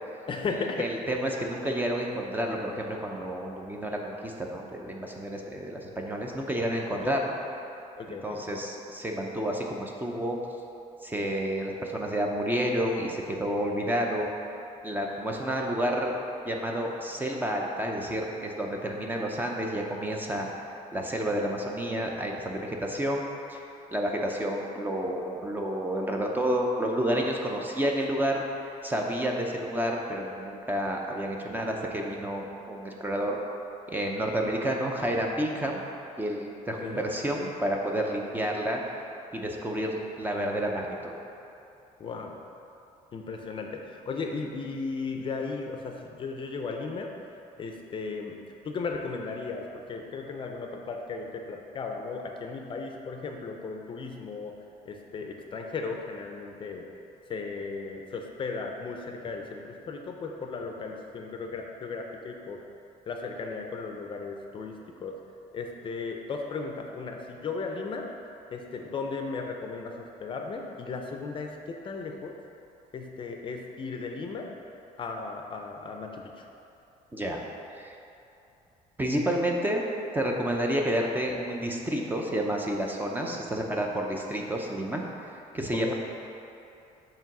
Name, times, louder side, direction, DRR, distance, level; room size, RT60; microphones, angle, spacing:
voice 1, 0.3-0.9 6.9-7.2 8.0-8.4 36.8-37.1 42.0-42.4 43.1-47.1 47.6-48.4 48.6-54.6 54.8-56.9 57.3-62.6 63.1-64.7 65.0-65.1 65.5-68.1 68.5-72.4 72.9-74.5 75.0-76.5 85.8-85.9, left 4 dB, 35° left, 2 dB, 0.5 m, -36 dB
voice 2, 0.8-7.4 8.1-10.4 11.0-14.3 14.8-16.1 16.4-20.5 20.9-23.2 23.5-23.6 23.9-33.4 33.9-35.8 36.2-38.8 39.3-41.1 77.1-77.4 77.8-78.0 79.0-79.8 80.1-85.0 85.5-85.9, right 1 dB, 15° right, 0 dB, 0.5 m, -30 dB
7.3 x 3.0 x 5.9 m, 2.8 s
cardioid pair, 150°, 15 cm